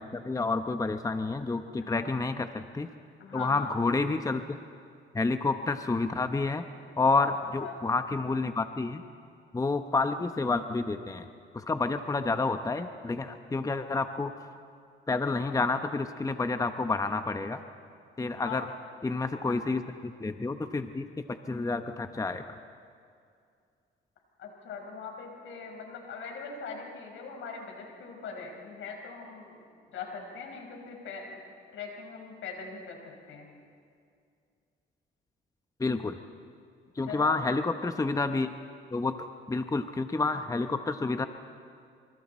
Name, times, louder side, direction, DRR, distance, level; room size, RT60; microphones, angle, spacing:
voice 1, 0.0-2.9 3.3-4.4 5.1-6.6 7.0-9.0 9.5-11.3 11.5-14.3 15.1-17.6 18.2-18.7 19.0-22.4 35.8-36.2 37.0-38.5 38.9-41.3, left 3 dB, 15° left, 8 dB, 0.9 m, -29 dB
voice 2, 3.2-3.7 7.2-7.8 18.4-18.6 19.4-19.6 24.4-29.6 29.9-31.4 31.7-33.5 37.0-37.4, left 5 dB, 80° left, 2 dB, 4.9 m, -41 dB
26.5 x 26.0 x 4.3 m, 2.3 s
cardioid pair, 90°, 20 cm